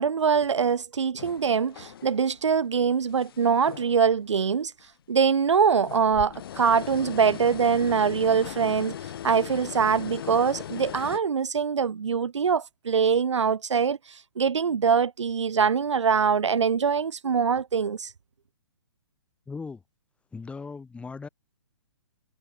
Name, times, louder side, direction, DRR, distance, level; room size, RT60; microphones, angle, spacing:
voice 1, 0.0-4.7 5.1-9.0 9.2-18.1, right 6 dB, 85° right, 0.4 m, -23 dB
sound 1, 1.2-2.4 2.8-4.4 4.8-4.9 5.7-11.2, left 10 dB, 55° left, 0.6 m, -39 dB
voice 2, 19.5-19.8 20.3-21.3, left 4 dB, 10° left, 3.1 m, -38 dB
figure-of-eight pair, 135°, 15 cm